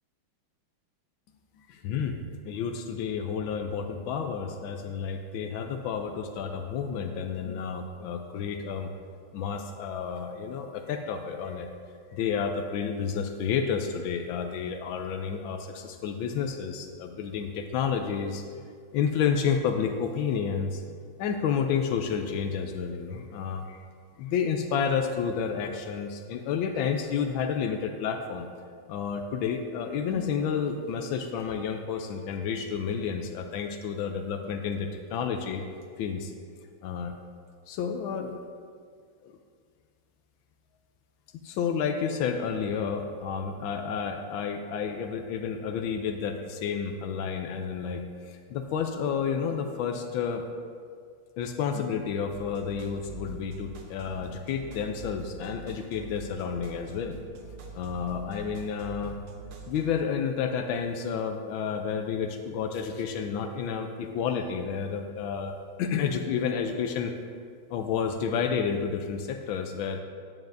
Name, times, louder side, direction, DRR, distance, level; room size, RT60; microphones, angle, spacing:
voice 1, 1.7-8.9 9.3-11.7 12.1-18.4 18.9-20.8 21.2-23.8 24.2-28.5 28.9-35.6 36.0-36.3 36.8-37.1 37.7-38.4 39.2-39.3 41.4-50.4 51.4-57.2 57.7-59.2 59.7-67.1 67.7-70.0, left 6 dB, 75° left, 5 dB, 1.2 m, -30 dB
sound 1, 52.3-60.0, right 5 dB, 90° right, 1.8 m, -44 dB
9.3 x 8.9 x 2.6 m, 2.1 s
omnidirectional pair, 2.4 m